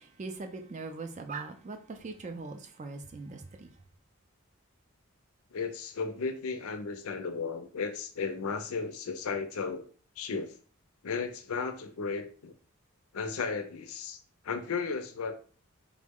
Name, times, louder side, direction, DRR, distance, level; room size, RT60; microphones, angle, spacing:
voice 1, 0.0-3.7, right 3 dB, 30° right, 0.3 m, -41 dB
voice 2, 5.5-9.8 10.2-10.5 11.0-12.5 13.1-14.2 14.4-15.4, left 5 dB, 75° left, 0.5 m, -34 dB
3.6 x 2.0 x 3.5 m
head